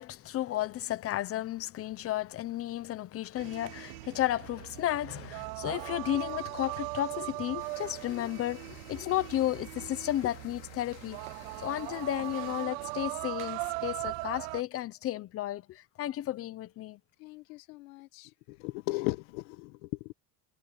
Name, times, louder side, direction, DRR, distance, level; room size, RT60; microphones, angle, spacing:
voice 1, 0.0-11.2 11.6-17.0, left 13 dB, 35° left, 0.8 m, -33 dB
sound 1, 3.4-14.6, right 27 dB, 85° right, 0.6 m, -39 dB
sound 2, 7.6-12.7, left 21 dB, 70° left, 2.8 m, -54 dB
voice 2, 17.2-20.1, left 21 dB, 90° left, 1.4 m, -37 dB
cardioid pair, 150°, 40 cm